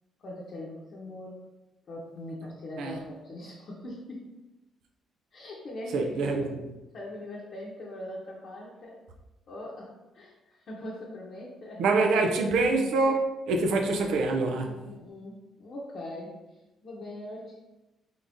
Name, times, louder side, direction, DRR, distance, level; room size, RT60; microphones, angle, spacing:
voice 1, 0.2-1.4 1.9-4.3 5.3-6.5 6.9-9.0 9.5-11.8 14.6-17.6, left 1 dB, 55° left, 0.8 m, -41 dB
voice 2, 5.9-6.4 11.8-14.7, right 3 dB, 85° right, 0.5 m, -25 dB
3.7 x 3.5 x 2.6 m
cardioid pair, 90°, 0 cm